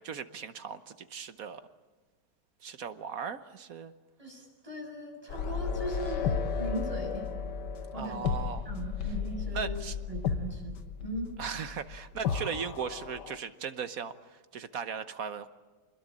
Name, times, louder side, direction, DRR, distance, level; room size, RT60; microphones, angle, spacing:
voice 1, 0.0-1.6 2.6-3.9 7.9-8.7 9.5-9.9 11.4-15.5, right 6 dB, 50° right, 10 dB, 1.2 m, -38 dB
voice 2, 4.2-7.3 7.9-8.2 8.7-9.8 10.1-11.3, right 1 dB, 15° right, 1 dB, 7.1 m, -39 dB
sound 1, 5.3-13.4, left 6 dB, 60° left, 1.6 m, -34 dB
27.5 x 21.0 x 8.7 m, 1.3 s
omnidirectional pair, 2.3 m